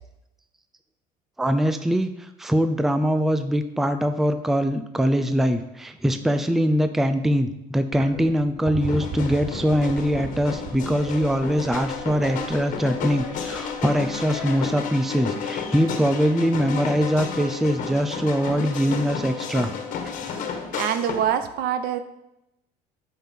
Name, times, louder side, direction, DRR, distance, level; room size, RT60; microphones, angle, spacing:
voice 1, 1.4-19.7 20.0-20.1, equal, ahead, 9 dB, 0.5 m, -23 dB
sound 1, 7.9-15.1 16.2-16.3, right 5 dB, 25° right, 1.0 m, -37 dB
sound 2, 8.8-21.4, left 6 dB, 50° left, 1.5 m, -32 dB
voice 2, 20.7-22.0, right 9 dB, 65° right, 10 dB, 1.0 m, -24 dB
9.0 x 5.8 x 7.5 m, 0.88 s
cardioid pair, 150°, 17 cm